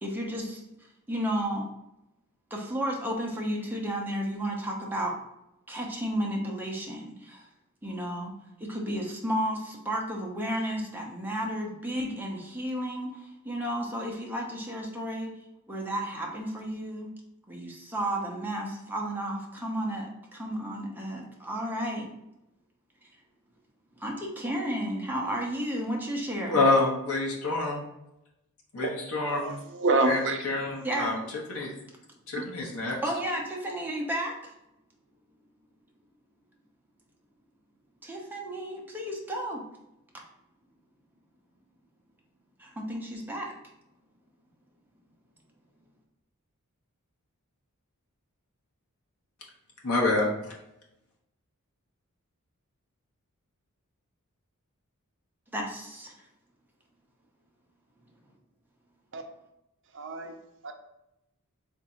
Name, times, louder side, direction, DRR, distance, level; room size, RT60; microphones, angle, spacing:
voice 1, 0.0-0.6 1.1-1.6 2.5-5.1 5.7-7.4 7.8-8.3 8.6-15.3 15.7-17.1 17.5-22.1 24.0-26.6 30.8-31.2 33.0-34.4 38.0-39.6 42.6-43.5 55.5-56.1, right 1 dB, 10° right, -1 dB, 0.7 m, -32 dB
voice 2, 26.4-27.8 28.7-29.5 30.0-31.2 31.5-31.7 32.3-33.0 49.8-50.5, left 2 dB, 70° left, -2 dB, 0.9 m, -27 dB
voice 3, 29.3-30.4 32.4-32.5 59.1-59.2 59.9-60.3 60.6-60.7, right 2 dB, 55° right, 4 dB, 0.6 m, -27 dB
3.5 x 2.6 x 4.2 m, 0.88 s
head